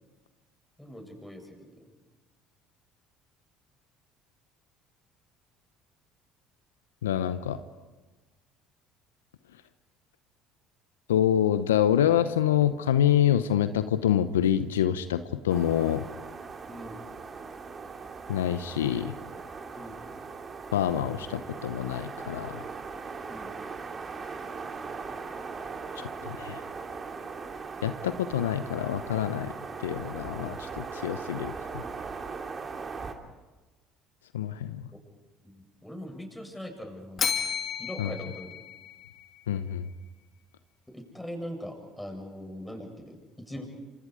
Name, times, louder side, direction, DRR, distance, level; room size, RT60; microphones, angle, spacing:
voice 1, 0.8-1.7 16.7-17.0 19.7-20.0 23.3-23.5 35.4-37.2 37.8-38.6 40.9-43.6, equal, 5° left, 3 dB, 7.9 m, -41 dB
voice 2, 7.0-7.6 11.1-16.0 18.3-19.1 20.7-22.6 25.9-26.6 27.8-29.5 29.8-31.9 34.3-34.9 38.0-38.1 39.5-39.9, left 10 dB, 85° left, 12 dB, 0.8 m, -26 dB
sound 1, 15.5-33.1, right 4 dB, 35° right, 2.9 m, -39 dB
Bell, 37.2-39.4, left 7 dB, 40° left, 2.8 m, -32 dB
28.0 x 27.0 x 5.1 m, 1.2 s
hypercardioid pair, 65°, 0 cm